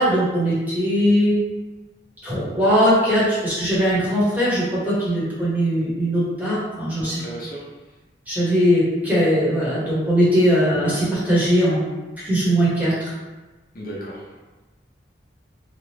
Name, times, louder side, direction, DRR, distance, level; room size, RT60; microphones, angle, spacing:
voice 1, 0.0-1.4 2.2-7.2 8.3-11.8 12.2-13.1, equal, 10° right, -9 dB, 1.0 m, -20 dB
voice 2, 7.0-7.7 10.7-10.8 13.7-14.3, right 1 dB, 55° left, -5 dB, 0.7 m, -35 dB
2.9 x 2.3 x 3.2 m, 1.2 s
head